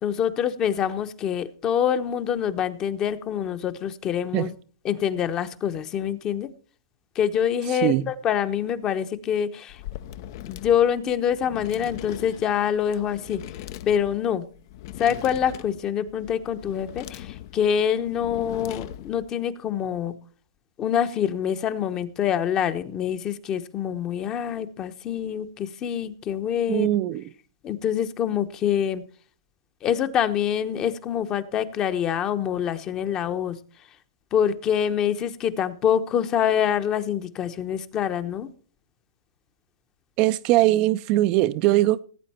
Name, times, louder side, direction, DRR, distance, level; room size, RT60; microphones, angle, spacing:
voice 1, 0.0-4.5 4.8-6.5 7.2-9.8 10.4-13.4 13.9-14.4 15.0-20.1 20.8-26.9 27.6-29.0 29.8-33.6 34.3-38.5, left 9 dB, 25° left, 0.9 m, -25 dB
voice 2, 7.7-8.1 26.7-27.3 40.2-42.0, right 15 dB, 40° right, 0.5 m, -21 dB
sound 1, 9.7-19.3, left 12 dB, 50° left, 0.6 m, -40 dB
17.0 x 8.4 x 4.3 m
hypercardioid pair, 135°, 2 cm